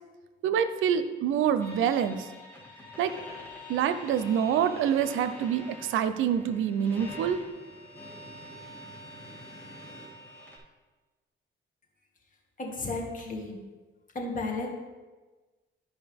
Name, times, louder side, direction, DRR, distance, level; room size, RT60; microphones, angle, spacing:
voice 1, 0.4-2.3 3.0-3.1 3.7-7.4, right 8 dB, 85° right, 11 dB, 0.6 m, -26 dB
sound 1, 1.6-10.6, left 1 dB, 10° left, 2.7 m, -46 dB
voice 2, 12.6-13.6 14.1-14.7, left 2 dB, 40° left, -1 dB, 2.0 m, -33 dB
12.5 x 5.3 x 3.5 m, 1.3 s
cardioid pair, 90°, 20 cm